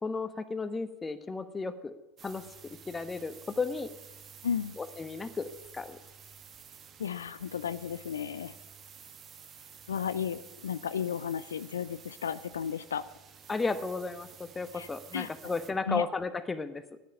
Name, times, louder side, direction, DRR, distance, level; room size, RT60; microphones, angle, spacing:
voice 1, 0.0-1.9 2.2-3.9 4.8-6.0 13.5-16.8, left 4 dB, 20° left, 11 dB, 1.1 m, -34 dB
sound 1, 2.2-15.7, right 7 dB, 40° right, 1.3 m, -52 dB
voice 2, 4.4-4.8 7.0-8.6 9.9-13.0 14.7-14.9 15.1-15.3 15.9-16.0, left 8 dB, 85° left, 14 dB, 0.4 m, -33 dB
10.5 x 9.2 x 9.9 m, 0.99 s
hypercardioid pair, 80°, 0 cm